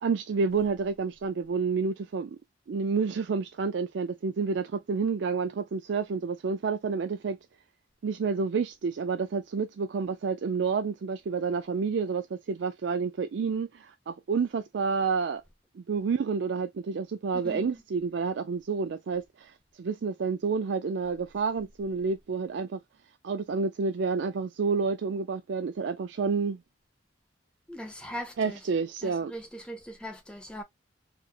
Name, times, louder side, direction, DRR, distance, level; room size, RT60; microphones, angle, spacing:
voice 1, 0.0-2.4 2.7-7.4 8.0-15.4 15.8-22.8 23.2-26.6 28.4-29.3, right 5 dB, 65° right, 0.4 m, -29 dB
voice 2, 17.4-17.8 27.7-28.6 29.0-30.6, equal, 5° left, 0.7 m, -40 dB
4.2 x 2.7 x 2.3 m
head